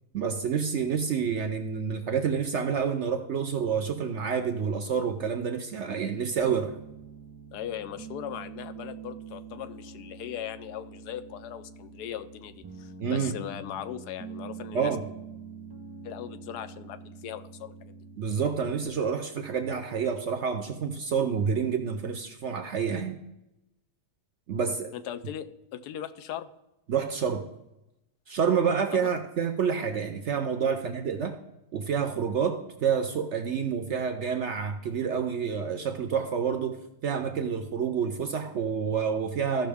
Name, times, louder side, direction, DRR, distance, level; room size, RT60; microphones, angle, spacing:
voice 1, 0.1-6.7 13.0-13.4 14.7-15.0 18.2-23.2 24.5-24.9 26.9-27.5 28.3-31.4 31.7-39.7, right 6 dB, 60° right, 7 dB, 0.7 m, -28 dB
Piano, 6.4-18.9, right 5 dB, 30° right, 0.5 m, -45 dB
voice 2, 7.5-14.9 16.0-18.0 24.9-26.5 28.9-29.1 30.7-30.8, left 10 dB, 80° left, 12 dB, 1.1 m, -39 dB
14.5 x 5.8 x 3.4 m, 0.92 s
omnidirectional pair, 1.7 m